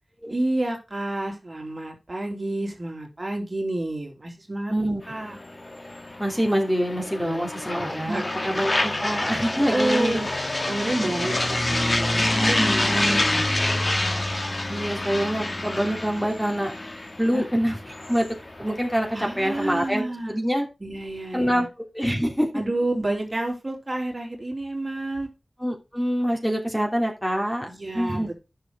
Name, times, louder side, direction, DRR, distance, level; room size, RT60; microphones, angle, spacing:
voice 1, 0.3-4.7 5.1-5.4 7.2-7.3 8.1-8.9 9.7-10.3 10.7-14.3 17.3-17.4 19.1-20.4 20.8-21.7 22.5-25.3 27.7-28.3, right 1 dB, 35° right, 1 dB, 3.4 m, -29 dB
voice 2, 4.7-5.0 6.2-10.3 14.7-16.7 17.2-17.8 18.1-18.3 18.6-20.7 21.3-21.7 21.9-22.5 25.6-27.7 27.9-28.3, equal, 5° left, 1 dB, 3.1 m, -25 dB
sound 1, 5.0-19.9, left 1 dB, 40° left, 1.9 m, -27 dB
10.0 x 6.7 x 4.7 m, 0.28 s
cardioid pair, 40°, 0 cm